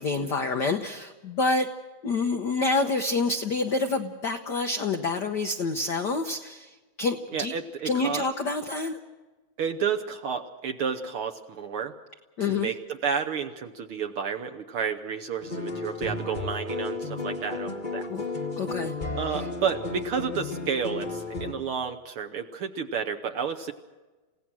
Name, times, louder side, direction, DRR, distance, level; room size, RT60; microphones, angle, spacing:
voice 1, 0.0-1.7 2.0-6.7 7.0-7.5 7.8-9.0 12.4-12.7 18.1-18.2 18.6-18.9, left 3 dB, 75° left, 6 dB, 0.9 m, -27 dB
voice 2, 7.3-8.3 9.6-11.9 12.4-18.1 19.1-23.7, right 6 dB, 65° right, 5 dB, 1.4 m, -31 dB
sound 1, 15.4-21.5, left 3 dB, 30° left, 0.9 m, -33 dB
29.5 x 17.0 x 6.2 m, 1.2 s
omnidirectional pair, 3.3 m